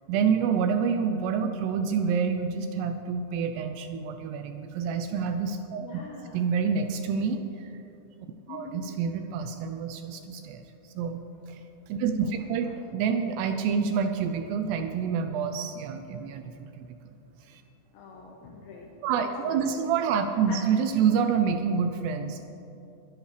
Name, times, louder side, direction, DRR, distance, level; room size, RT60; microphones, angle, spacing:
voice 1, 0.1-5.8 6.3-7.7 8.2-10.6 11.0-17.0 17.4-17.6 19.0-22.4, right 6 dB, 85° right, 7 dB, 2.4 m, -28 dB
voice 2, 5.7-6.4 8.5-8.8 12.2-12.7 17.9-19.9 20.5-20.6, left 4 dB, 75° left, -2 dB, 3.3 m, -44 dB
22.5 x 11.0 x 3.3 m, 3.0 s
omnidirectional pair, 5.5 m